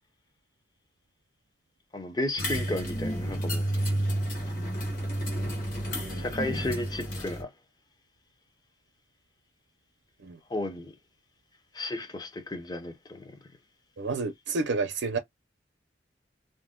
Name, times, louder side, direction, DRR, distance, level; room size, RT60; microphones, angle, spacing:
voice 1, 1.9-3.7 6.1-7.5 10.5-11.0 11.7-13.4, left 1 dB, 20° left, 0.5 m, -33 dB
sound 1, 2.4-7.4, equal, 50° left, 1.0 m, -31 dB
voice 2, 6.0-6.3 10.2-10.4 14.0-15.2, right 3 dB, 90° right, 0.5 m, -30 dB
2.6 x 2.1 x 3.5 m
head